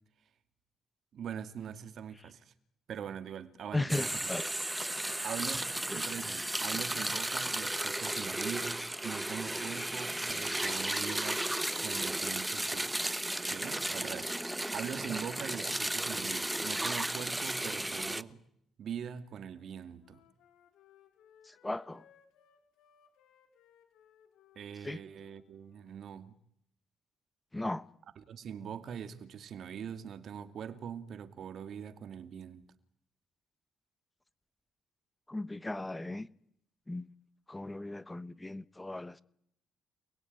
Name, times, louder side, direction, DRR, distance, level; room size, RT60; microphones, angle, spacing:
voice 1, 1.1-2.5 2.9-4.1 5.2-11.4 11.8-12.9 13.5-18.4 18.8-20.2 24.6-26.4 28.3-32.7, right 8 dB, 65° right, 2.4 m, -42 dB
voice 2, 3.7-4.4 5.9-6.0 21.4-22.0 24.8-25.0 27.5-27.8 35.3-36.3 36.9-37.1 37.5-39.2, left 2 dB, 15° left, 1.0 m, -36 dB
sound 1, 3.9-18.2, right 1 dB, 10° right, 1.0 m, -34 dB
Wind instrument woodwind instrument, 19.6-26.0, left 9 dB, 85° left, 4.7 m, -65 dB
29.0 x 21.0 x 9.6 m
cardioid pair, 90°, 0 cm